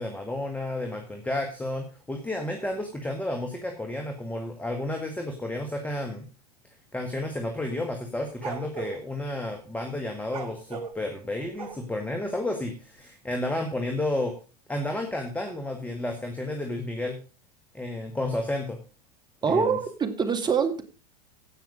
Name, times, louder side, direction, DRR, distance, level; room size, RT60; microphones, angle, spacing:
voice 1, 0.0-6.2 6.9-14.3 14.7-17.2 17.7-18.8 19.5-19.8, left 1 dB, 5° left, 3 dB, 1.9 m, -31 dB
sound 1, 8.3-9.0 10.2-12.1, right 5 dB, 75° right, 1.7 m, -37 dB
voice 2, 19.4-20.8, right 6 dB, 20° right, 6 dB, 2.0 m, -24 dB
16.5 x 5.9 x 5.1 m, 0.34 s
hypercardioid pair, 90°, 20 cm